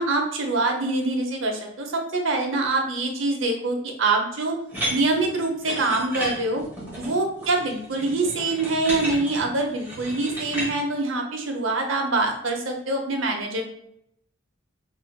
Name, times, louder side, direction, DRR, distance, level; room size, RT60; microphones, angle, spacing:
voice 1, 0.0-4.6 4.9-6.6 7.0-13.6, right 2 dB, 70° right, 3 dB, 0.7 m, -25 dB
sound 1, 4.7-10.7, right 1 dB, 10° right, 1.3 m, -33 dB
3.3 x 3.2 x 2.2 m, 0.73 s
head